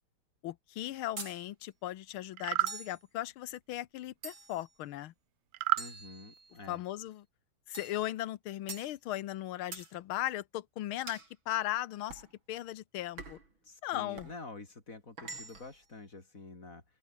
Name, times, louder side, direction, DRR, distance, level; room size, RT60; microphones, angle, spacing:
voice 1, 0.4-5.1 6.7-7.2 7.7-11.2 11.5-12.2 12.5-13.4 13.8-14.3, left 14 dB, 80° left, 1.7 m, -37 dB
sound 1, 1.2-1.4 2.7-3.0 4.2-4.7 5.8-6.7 7.7-8.0 8.7-8.9 9.7-9.9 11.1-11.3 12.1-12.3 13.2-13.5 14.2-14.4 15.2-15.8, right 4 dB, 65° right, 5.5 m, -45 dB
sound 2, 2.3-2.8 5.5-5.9, right 16 dB, 85° right, 1.6 m, -29 dB
voice 2, 5.8-6.8 13.6-16.8, left 3 dB, 40° left, 3.9 m, -48 dB
open air
omnidirectional pair, 2.3 m